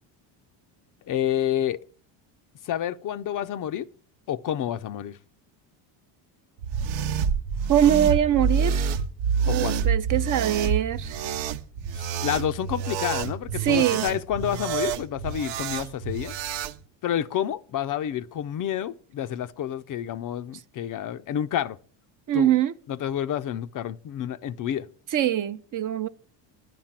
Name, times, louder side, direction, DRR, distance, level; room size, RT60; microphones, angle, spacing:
voice 1, 1.1-1.8 2.6-3.8 4.3-5.2 9.5-9.9 11.9-16.3 17.0-21.8 22.3-22.5 22.9-24.9, left 10 dB, 40° left, 0.5 m, -29 dB
sound 1, 6.6-16.7, right 6 dB, 65° right, 0.9 m, -27 dB
voice 2, 7.7-9.0 9.5-11.2 13.6-14.1 22.3-22.7 25.1-26.1, right 11 dB, 40° right, 0.7 m, -23 dB
10.5 x 6.0 x 8.8 m
cardioid pair, 115°, 48 cm